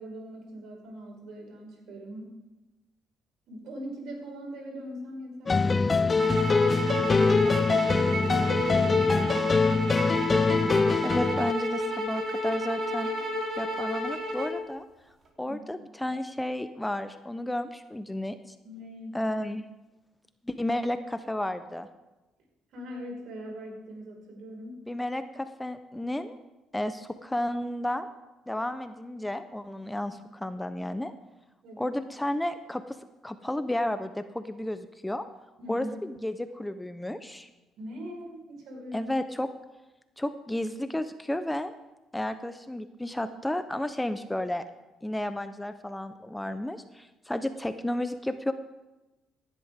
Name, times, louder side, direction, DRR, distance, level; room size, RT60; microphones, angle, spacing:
voice 1, 0.0-2.3 3.5-6.3 6.9-11.0 15.4-15.6 18.6-19.2 22.7-24.8 29.8-30.1 31.6-31.9 35.6-35.9 37.8-39.1, right 1 dB, 65° right, 0 dB, 5.2 m, -42 dB
sound 1, 5.5-11.5, left 4 dB, 30° left, 0.4 m, -23 dB
sound 2, 6.2-14.6, equal, 45° right, 3.5 m, -31 dB
voice 2, 11.0-13.1 13.6-14.8 15.4-18.5 19.1-19.6 20.5-21.9 24.9-26.4 26.7-28.1 28.5-31.1 31.8-32.8 33.2-35.2 35.7-37.5 38.9-39.5 40.2-41.7 42.1-44.6 45.0-48.5, left 1 dB, 10° left, 10 dB, 0.9 m, -32 dB
17.0 x 11.5 x 3.7 m, 1.0 s
hypercardioid pair, 60°, 0 cm